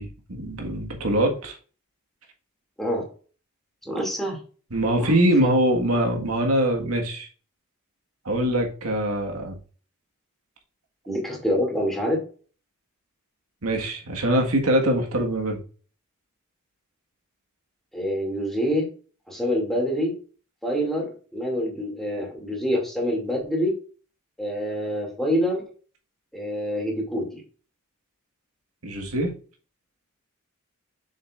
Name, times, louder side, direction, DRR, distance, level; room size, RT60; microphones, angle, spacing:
voice 1, 0.0-1.6 4.7-7.3 8.2-9.6 13.6-15.6 28.8-29.3, right 1 dB, 85° right, 2 dB, 1.6 m, -23 dB
voice 2, 3.8-4.4 5.0-5.5 11.1-12.2 17.9-18.9 19.3-20.1 20.6-23.7 24.4-25.6 26.3-27.4, equal, ahead, -1 dB, 2.4 m, -26 dB
7.3 x 6.7 x 2.5 m, 0.38 s
head